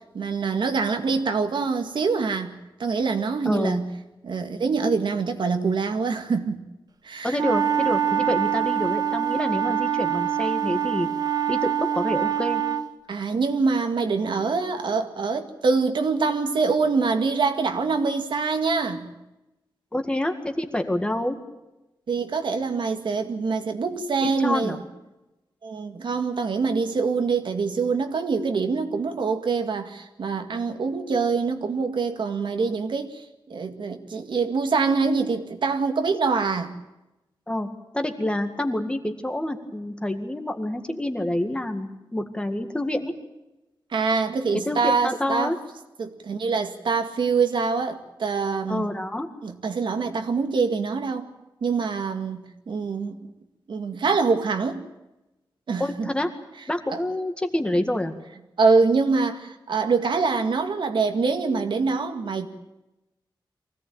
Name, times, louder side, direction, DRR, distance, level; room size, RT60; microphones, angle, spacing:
voice 1, 0.1-2.5 2.8-3.8 4.2-6.6 7.0-7.4 13.1-19.1 22.1-24.8 25.6-36.7 43.9-45.5 46.0-48.9 49.4-51.3 51.6-53.2 53.7-54.8 55.7-56.1 56.9-57.0 58.6-62.5, right 4 dB, 65° right, 6 dB, 2.0 m, -25 dB
voice 2, 3.5-3.8 7.2-11.1 11.5-12.6 19.9-21.4 24.2-24.8 37.5-43.1 44.7-45.6 48.7-49.3 55.8-56.3 56.7-58.1, left 1 dB, 10° left, 6 dB, 1.9 m, -27 dB
sound 1, 7.4-12.9, right 9 dB, 50° right, 1.4 m, -24 dB
24.0 x 17.5 x 8.9 m, 0.98 s
wide cardioid pair, 175°, 9 cm